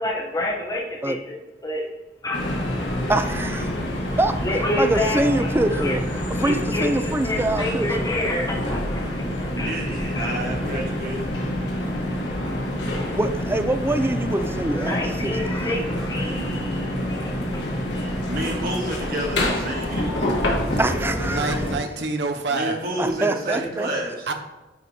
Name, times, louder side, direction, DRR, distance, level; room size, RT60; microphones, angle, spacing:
voice 1, 0.0-1.4 1.6-1.8 2.2-2.8 4.4-6.0 6.4-6.9 7.2-9.0 9.4-10.4 14.7-17.4, left 1 dB, 20° left, -2 dB, 0.8 m, -28 dB
sound 1, 2.3-21.8, left 1 dB, 75° left, 1.5 m, -27 dB
voice 2, 3.1-3.7 4.2-4.4 4.8-6.1 6.4-8.1 12.9-16.9 20.8-21.6 23.0-23.9, right 2 dB, 15° right, 8 dB, 0.4 m, -25 dB
voice 3, 9.6-11.2 17.9-20.1 20.7-20.8 22.5-24.1, right 1 dB, 55° right, -1 dB, 1.4 m, -30 dB
voice 4, 21.1-22.8 23.5-23.6 24.3-24.4, right 3 dB, 75° right, 6 dB, 0.7 m, -28 dB
9.3 x 4.8 x 2.7 m, 1.1 s
head